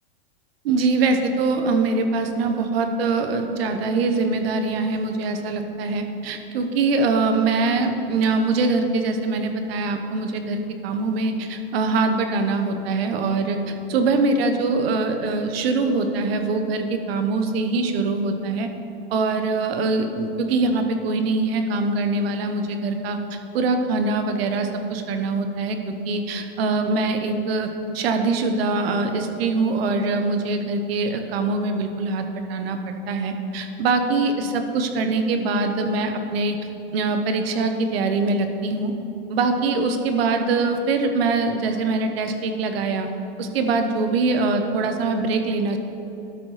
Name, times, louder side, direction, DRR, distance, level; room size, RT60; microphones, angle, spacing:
voice 1, 0.6-18.7 19.1-27.7 27.9-36.6 36.9-38.9 39.3-43.1 43.4-45.8, right 3 dB, 65° right, 6 dB, 1.1 m, -23 dB
12.5 x 5.4 x 5.8 m, 2.9 s
supercardioid pair, 150°, 33 cm